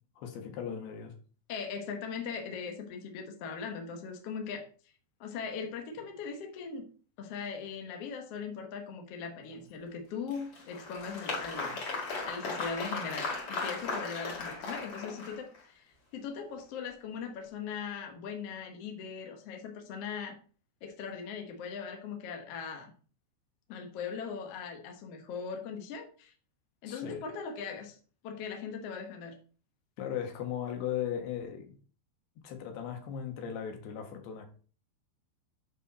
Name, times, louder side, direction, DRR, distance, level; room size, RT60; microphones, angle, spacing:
voice 1, 0.2-1.1 26.8-27.2 30.0-31.8 32.4-34.5, left 9 dB, 70° left, 4 dB, 3.3 m, -37 dB
voice 2, 1.5-4.7 5.2-6.9 7.2-11.8 12.2-15.8 16.1-20.4 20.8-22.9 23.7-26.3 26.8-28.0 28.2-29.4, left 6 dB, 90° left, 3 dB, 1.3 m, -40 dB
Applause, 10.3-15.6, left 3 dB, 45° left, 2.0 m, -37 dB
7.2 x 6.4 x 4.1 m, 0.41 s
omnidirectional pair, 5.0 m